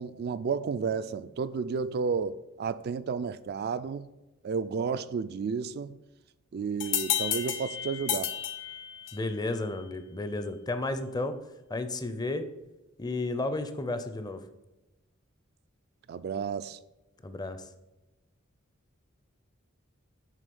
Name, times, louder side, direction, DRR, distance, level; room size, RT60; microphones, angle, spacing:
voice 1, 0.0-4.1 4.4-6.0 6.5-8.3 16.1-16.8, right 5 dB, 50° right, 0.3 m, -32 dB
sound 1, 6.8-9.4, left 10 dB, 65° left, 0.7 m, -32 dB
voice 2, 9.1-11.4 11.7-12.5 13.0-14.4 17.2-17.7, left 2 dB, 20° left, 0.5 m, -32 dB
7.5 x 3.6 x 5.3 m
head